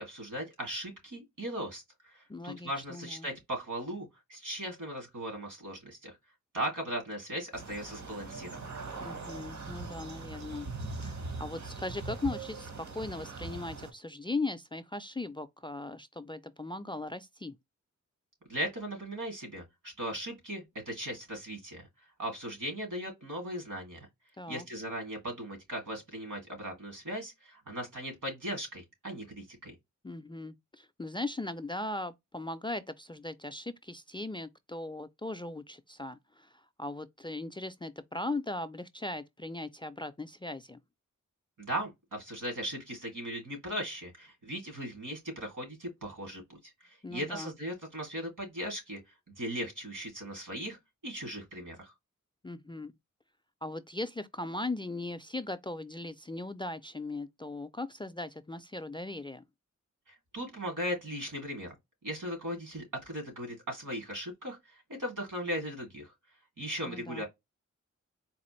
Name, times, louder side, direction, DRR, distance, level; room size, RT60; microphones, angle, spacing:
voice 1, 0.0-6.2 6.5-8.8 18.5-21.9 22.2-24.1 24.5-29.7 41.6-49.0 49.4-50.8 51.0-51.9 60.1-61.7 62.0-66.1 66.6-67.2, equal, 80° right, 2.3 m, -38 dB
voice 2, 2.3-3.3 9.0-10.7 11.0-17.6 24.4-24.7 30.0-40.8 47.0-47.5 52.4-52.9 53.6-59.4 66.8-67.2, left 2 dB, 15° left, 0.3 m, -38 dB
sound 1, 7.5-13.9, right 3 dB, 65° right, 1.0 m, -41 dB
4.1 x 2.5 x 3.0 m
wide cardioid pair, 70°, 31 cm